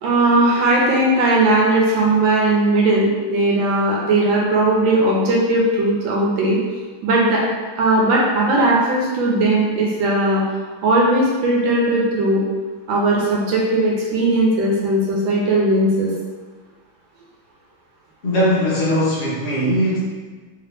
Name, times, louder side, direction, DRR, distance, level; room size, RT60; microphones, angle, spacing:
voice 1, 0.0-6.6 7.0-7.4 7.8-10.4 10.8-12.4 12.9-16.1, right 2 dB, 80° right, -3 dB, 1.5 m, -18 dB
voice 2, 18.2-20.0, equal, 55° left, -8 dB, 0.6 m, -19 dB
3.5 x 2.9 x 3.3 m, 1.4 s
omnidirectional pair, 2.1 m